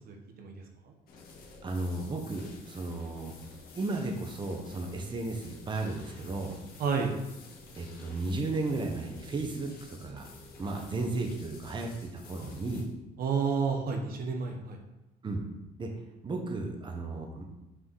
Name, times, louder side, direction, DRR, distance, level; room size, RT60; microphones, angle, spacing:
voice 1, 0.1-0.5 6.8-7.1 13.2-14.8, right 5 dB, 60° right, 3 dB, 1.2 m, -30 dB
sound 1, 1.1-12.8, left 3 dB, 60° left, 1.7 m, -51 dB
voice 2, 1.6-3.3 3.8-6.5 7.8-10.3 10.6-12.8 15.2-15.4 15.8-15.9 16.2-17.4, right 2 dB, 25° right, 3 dB, 1.1 m, -34 dB
6.1 x 5.4 x 4.8 m, 0.94 s
cardioid pair, 110°, 17 cm